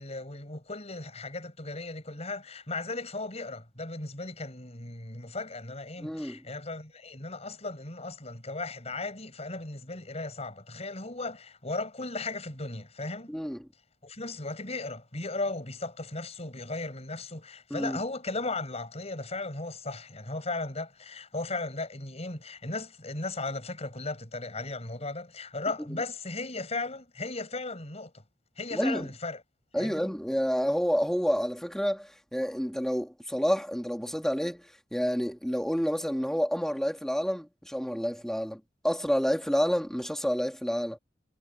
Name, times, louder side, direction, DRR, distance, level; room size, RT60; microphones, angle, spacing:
voice 1, 0.0-13.4 14.0-28.2 28.6-29.4 29.7-30.1, left 2 dB, 35° left, 6.9 m, -36 dB
voice 2, 6.0-6.4 13.3-13.6 17.7-18.0 28.7-29.1 29.7-41.0, equal, 5° left, 3.1 m, -29 dB
head